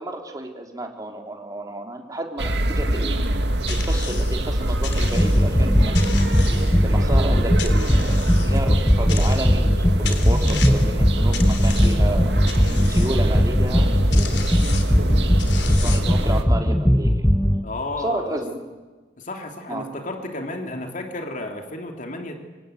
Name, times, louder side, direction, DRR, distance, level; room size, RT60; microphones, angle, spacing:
voice 1, 0.0-3.2 3.7-6.1 6.8-12.4 12.9-14.7 15.6-17.2 18.0-18.6 19.7-19.8, right 1 dB, 20° right, 3 dB, 3.5 m, -32 dB
sound 1, 2.4-16.4, right 1 dB, 75° right, 2.3 m, -24 dB
sound 2, 3.7-4.4 4.8-5.5 5.9-7.0 7.6-8.6 9.1-9.7 10.0-10.9 11.3-12.1 12.5-13.2 13.8-13.9 14.1-15.0 15.4-16.2, left 7 dB, 85° left, 3.2 m, -35 dB
sound 3, 5.0-17.6, equal, 10° left, 1.0 m, -19 dB
voice 2, 17.6-18.4 19.2-22.3, left 2 dB, 50° left, 4 dB, 3.1 m, -32 dB
25.0 x 25.0 x 9.4 m, 1.3 s
head